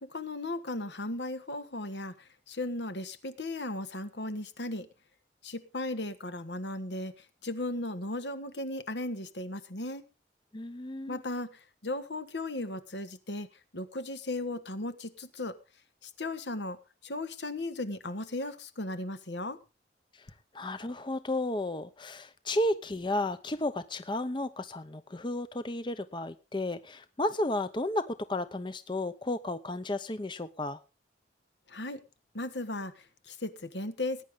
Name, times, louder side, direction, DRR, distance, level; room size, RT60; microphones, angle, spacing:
voice 1, 0.0-4.9 5.4-10.0 11.1-13.5 13.7-15.6 16.0-19.6 31.7-32.0 32.3-34.2, left 2 dB, 80° left, 1.5 m, -36 dB
voice 2, 10.5-11.2 20.1-20.3 20.5-30.8, left 1 dB, 25° left, 0.7 m, -33 dB
19.5 x 9.8 x 3.6 m
head